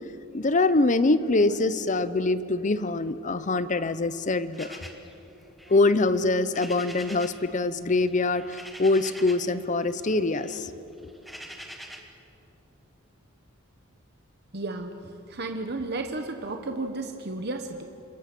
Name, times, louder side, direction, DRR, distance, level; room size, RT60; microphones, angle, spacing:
voice 1, 0.3-4.8 5.7-10.7, left 2 dB, 35° left, 14 dB, 0.7 m, -24 dB
sound 1, 4.5-7.5 7.7-9.6 9.9-12.2, equal, ahead, 1.6 m, -45 dB
voice 2, 14.5-15.0 15.3-17.8, right 2 dB, 50° right, 5 dB, 1.1 m, -33 dB
27.5 x 22.0 x 6.1 m, 3.0 s
head